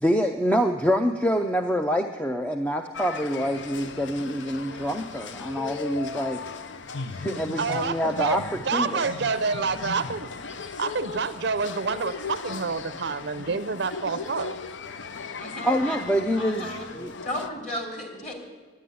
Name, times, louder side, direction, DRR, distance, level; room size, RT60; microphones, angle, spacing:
voice 1, 0.0-6.4 7.1-9.0 15.6-17.1, equal, 5° left, 5 dB, 0.4 m, -26 dB
sound 1, 2.9-17.5, left 4 dB, 65° left, 0.6 m, -37 dB
voice 2, 7.2-10.3 10.8-14.6, right 4 dB, 55° right, 12 dB, 0.6 m, -28 dB
voice 3, 15.3-16.9 17.2-18.3, left 1 dB, 35° left, 0 dB, 2.9 m, -35 dB
11.5 x 10.0 x 9.4 m, 1.3 s
head